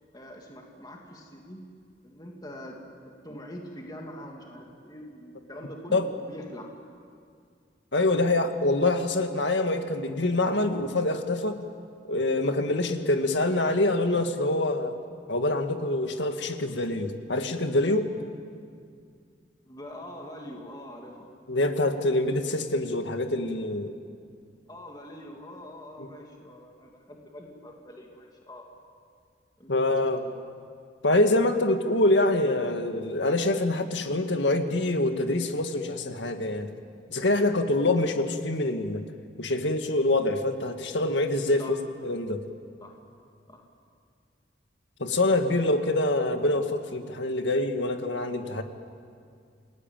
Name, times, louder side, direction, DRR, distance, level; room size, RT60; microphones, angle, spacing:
voice 1, 0.1-1.6 2.0-2.8 3.2-6.7 19.7-21.3 24.7-28.7 29.6-29.9 30.2-30.4 41.6-41.7 42.8-43.0 43.5-43.6, equal, 20° left, 0 dB, 2.7 m, -44 dB
voice 2, 7.9-11.6 12.1-15.0 15.3-18.1 21.5-24.0 26.0-26.1 29.7-30.2 31.0-36.7 37.1-39.0 39.4-41.6 42.0-42.4 45.0-48.6, left 2 dB, 80° left, 6 dB, 1.9 m, -25 dB
29.0 x 19.5 x 9.1 m, 2.2 s
head